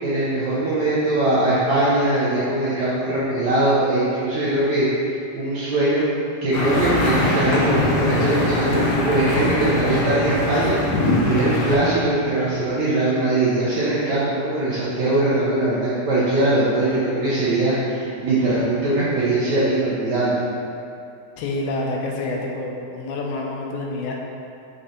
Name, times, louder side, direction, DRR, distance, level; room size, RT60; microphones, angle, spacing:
voice 1, 0.0-5.1 5.3-6.1 6.4-10.8 11.2-20.4, right 2 dB, 80° right, -9 dB, 1.6 m, -21 dB
sound 1, 6.5-11.8, left 2 dB, 70° left, 1.7 m, -22 dB
voice 2, 21.4-24.2, left 2 dB, 90° left, -1 dB, 2.6 m, -27 dB
6.5 x 3.7 x 4.2 m, 2.7 s
omnidirectional pair, 4.2 m